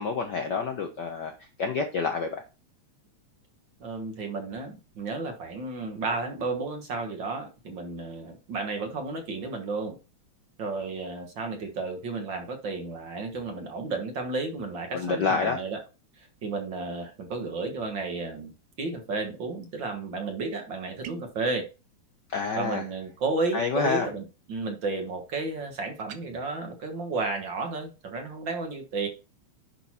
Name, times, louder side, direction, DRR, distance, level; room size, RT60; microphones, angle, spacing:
voice 1, 0.0-1.3 1.6-2.4 14.9-15.6 22.3-22.8 23.5-24.1, left 5 dB, 90° left, 0.9 m, -28 dB
voice 2, 3.8-10.0 10.6-15.8 16.2-18.5 18.8-21.7 22.6-29.1, right 3 dB, 50° right, 1.6 m, -32 dB
sound 1, 21.0-21.4 26.0-26.2, right 10 dB, 75° right, 1.1 m, -42 dB
10.5 x 4.4 x 4.2 m
omnidirectional pair, 3.3 m